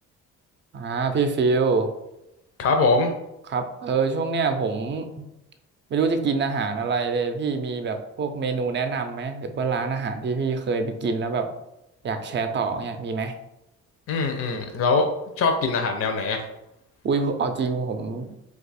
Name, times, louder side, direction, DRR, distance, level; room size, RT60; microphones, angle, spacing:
voice 1, 0.7-1.9 3.5-5.2 5.9-11.5 12.0-13.3 17.0-18.3, right 4 dB, 40° right, 7 dB, 0.5 m, -25 dB
voice 2, 2.6-3.1 14.1-15.1 15.4-16.5, left 3 dB, 50° left, 4 dB, 0.5 m, -22 dB
2.6 x 2.4 x 4.1 m, 0.88 s
cardioid pair, 90°, 30 cm